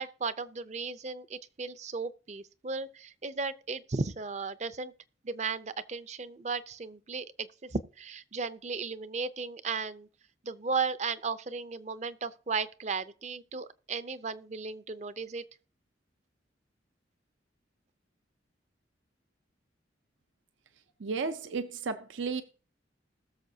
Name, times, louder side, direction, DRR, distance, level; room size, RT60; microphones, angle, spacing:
voice 1, 0.0-4.9 5.2-10.1 10.4-15.4, right 4 dB, 35° right, 0.5 m, -35 dB
voice 2, 21.0-22.4, right 4 dB, 80° right, 0.6 m, -33 dB
20.0 x 6.8 x 2.7 m
head